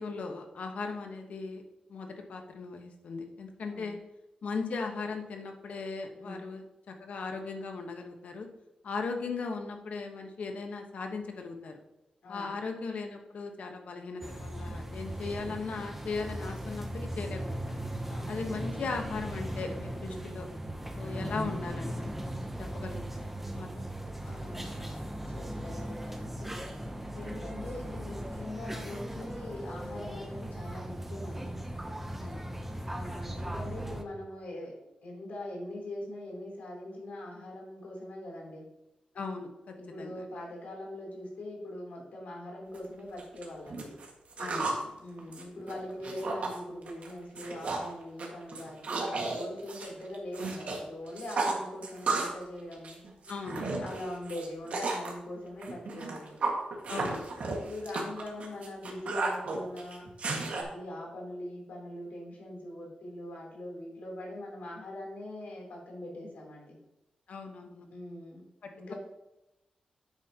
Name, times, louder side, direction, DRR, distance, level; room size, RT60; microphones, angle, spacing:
voice 1, 0.0-1.6 1.9-4.0 4.4-8.5 8.8-11.8 12.3-17.8 18.3-20.5 20.9-22.1 22.6-23.2 23.5-23.8 32.2-32.4 39.1-40.2 44.4-45.0 53.3-53.8 56.9-57.3 67.3-67.9, left 4 dB, 65° left, 4 dB, 1.2 m, -38 dB
voice 2, 3.6-4.0 6.1-6.4 12.2-12.6 18.1-18.4 24.2-26.6 27.1-31.6 32.9-38.7 39.7-44.0 45.0-53.0 53.8-56.4 57.4-60.1 60.5-66.8 67.9-68.4 68.7-68.9, left 1 dB, 85° left, -2 dB, 3.3 m, -42 dB
sound 1, 14.2-34.0, right 1 dB, 10° right, 0.7 m, -38 dB
sound 2, 42.7-42.8 43.2-44.8 45.2-46.6 46.9-47.1 47.4-47.9 48.2-50.8 51.1-52.4 52.7-55.1 55.6-60.6, right 3 dB, 60° right, 1.7 m, -33 dB
9.8 x 7.7 x 2.9 m, 0.95 s
wide cardioid pair, 170°, 3 cm